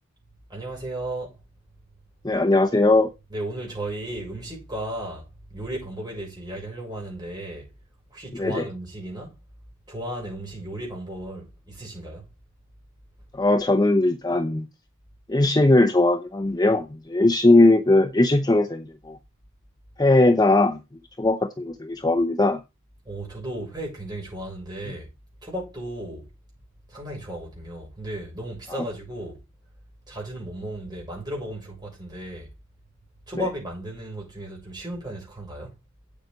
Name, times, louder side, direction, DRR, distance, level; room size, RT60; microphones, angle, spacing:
voice 1, 0.5-1.4 3.3-7.7 8.1-9.3 9.9-12.2 23.0-25.1 25.4-26.3 26.9-29.4 30.1-32.5 33.3-35.7, right 1 dB, 20° right, 6.8 m, -35 dB
voice 2, 2.2-3.1 8.3-8.7 13.3-14.7 15.3-19.2 20.0-20.8 21.2-22.6, left 2 dB, 20° left, 0.7 m, -19 dB
9.0 x 8.2 x 4.0 m
head